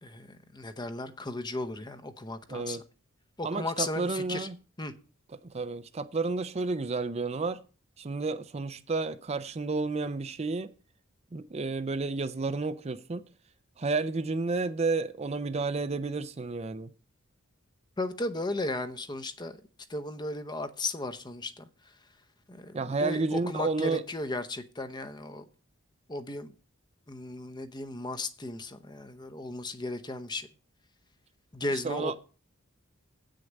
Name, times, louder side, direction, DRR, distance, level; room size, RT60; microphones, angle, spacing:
voice 1, 0.0-2.8 3.4-4.5 4.8-4.9 18.0-19.6 19.9-21.7 22.5-25.4 26.1-26.5 27.1-30.5 31.5-32.2, left 2 dB, 20° left, 0.8 m, -35 dB
voice 2, 2.5-2.8 3.4-4.6 5.4-7.6 8.0-10.7 11.3-13.3 13.8-16.9 22.7-24.0 31.8-32.2, right 3 dB, 30° right, 0.5 m, -31 dB
8.5 x 6.5 x 7.5 m
head